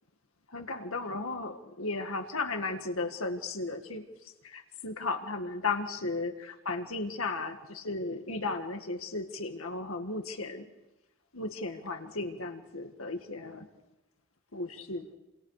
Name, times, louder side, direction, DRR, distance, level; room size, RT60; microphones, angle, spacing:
voice 1, 0.5-4.0 4.4-10.7 11.3-13.7 14.5-15.1, left 3 dB, 80° left, 5 dB, 1.9 m, -35 dB
29.5 x 26.5 x 5.0 m, 0.99 s
head